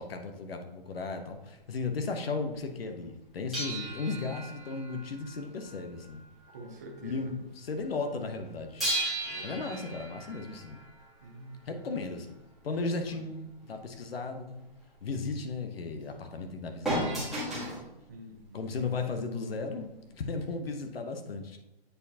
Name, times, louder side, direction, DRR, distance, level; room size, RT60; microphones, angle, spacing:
voice 1, 0.0-6.2 7.0-8.9 9.4-10.8 11.7-12.4 12.6-14.6 15.0-17.6 18.5-21.6, left 4 dB, 75° left, 5 dB, 0.9 m, -35 dB
sound 1, 3.5-6.7 6.9-7.2 8.8-11.5 16.8-17.9 18.8-18.9, right 1 dB, ahead, 1.4 m, -35 dB
voice 2, 6.5-7.3 9.2-9.7 11.2-11.9 13.1-13.2 18.1-18.6, right 1 dB, 20° right, 1 dB, 0.5 m, -47 dB
7.9 x 4.4 x 2.7 m, 0.97 s
hypercardioid pair, 165°, 30 cm